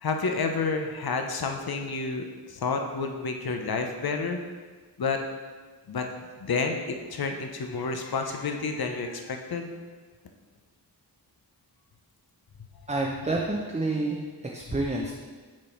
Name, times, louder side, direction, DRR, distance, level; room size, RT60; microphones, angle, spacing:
voice 1, 0.0-4.4 5.0-5.2 5.9-6.0 6.4-6.8 7.1-9.7, left 4 dB, 60° left, 4 dB, 0.8 m, -29 dB
voice 2, 12.9-14.2 14.4-15.2, right 2 dB, 15° right, -1 dB, 0.6 m, -28 dB
6.4 x 4.1 x 4.4 m, 1.4 s
wide cardioid pair, 55°, 41 cm